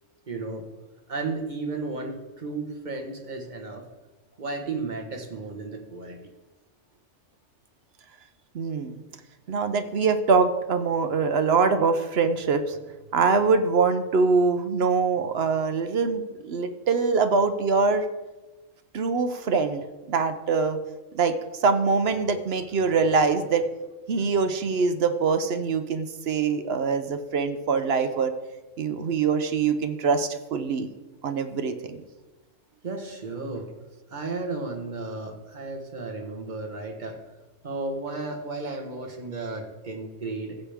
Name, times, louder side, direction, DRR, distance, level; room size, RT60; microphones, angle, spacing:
voice 1, 0.3-0.7 1.1-3.8 4.4-6.3 32.8-33.7 34.1-37.2 37.6-40.6, right 3 dB, 35° right, 2 dB, 1.4 m, -33 dB
voice 2, 8.5-9.0 9.5-12.8 13.1-18.0 18.9-20.8 21.1-21.4 21.6-23.7 24.1-28.3 28.8-30.9 31.2-32.0, right 4 dB, 60° right, 9 dB, 0.8 m, -23 dB
15.5 x 7.3 x 3.5 m, 1.1 s
omnidirectional pair, 1.4 m